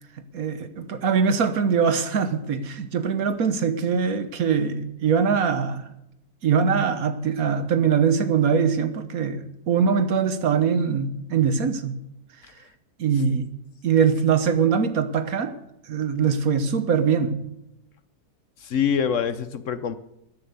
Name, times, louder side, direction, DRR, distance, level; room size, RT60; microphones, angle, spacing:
voice 1, 0.3-5.9 6.4-12.0 13.0-13.5 13.8-15.6 15.9-17.4, right 6 dB, 65° right, 1.5 m, -22 dB
voice 2, 18.6-19.9, left 7 dB, 60° left, 0.9 m, -25 dB
14.0 x 10.0 x 6.7 m
omnidirectional pair, 1.6 m